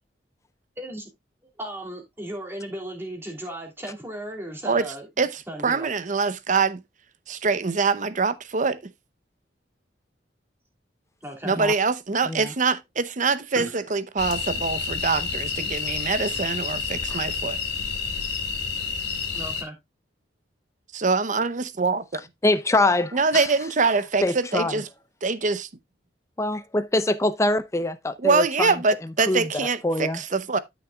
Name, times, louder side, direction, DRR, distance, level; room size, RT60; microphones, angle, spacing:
voice 1, 1.6-5.1 5.5-5.9 11.2-11.6 19.3-19.8, right 1 dB, 15° right, 2.9 m, -36 dB
voice 2, 4.6-6.8 7.3-8.9 11.4-17.6 20.9-22.2 23.1-24.8 25.2-25.7 28.2-30.6, right 4 dB, 45° right, 0.7 m, -24 dB
sound 1, 14.2-19.6, left 5 dB, 65° left, 2.8 m, -29 dB
voice 3, 22.4-23.5 24.2-24.8 26.4-30.2, left 2 dB, 15° left, 0.6 m, -25 dB
13.0 x 6.1 x 2.3 m
head